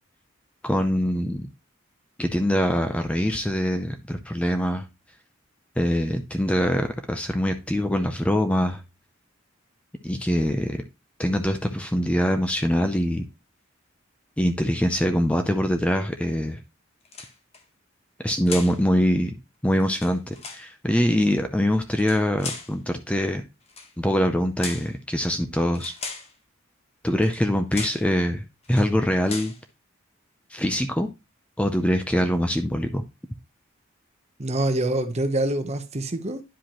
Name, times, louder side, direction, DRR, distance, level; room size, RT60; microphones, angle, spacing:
voice 1, 0.6-1.5 2.2-4.8 5.8-8.8 10.0-10.8 11.2-13.2 14.4-16.6 18.2-19.3 19.6-23.4 24.0-25.9 27.0-28.4 28.7-29.5 30.5-31.1 31.6-33.0, equal, 5° left, 0.5 m, -23 dB
sound 1, 17.0-17.6 18.5-18.8 19.8-20.7 21.9-22.7 23.7-23.9 24.6-24.9 25.7-26.3 27.2-27.4 27.7-28.1 28.6-28.9 29.2-29.6, left 4 dB, 30° left, 1.1 m, -37 dB
voice 2, 34.4-36.4, right 1 dB, 35° right, 0.9 m, -25 dB
10.0 x 5.0 x 3.0 m
head